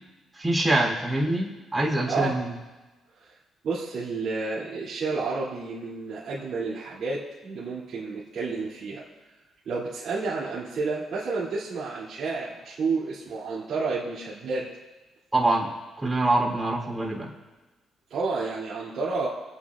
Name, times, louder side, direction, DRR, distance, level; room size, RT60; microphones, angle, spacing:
voice 1, 0.3-2.5 15.3-15.7 16.0-17.3, right 1 dB, 15° right, -3 dB, 3.2 m, -25 dB
voice 2, 2.0-2.4 3.2-3.3 3.6-9.0 9.6-14.7 18.1-19.3, right 4 dB, 65° right, -9 dB, 2.7 m, -30 dB
26.5 x 8.9 x 2.5 m, 1.2 s
cardioid pair, 90°, 0 cm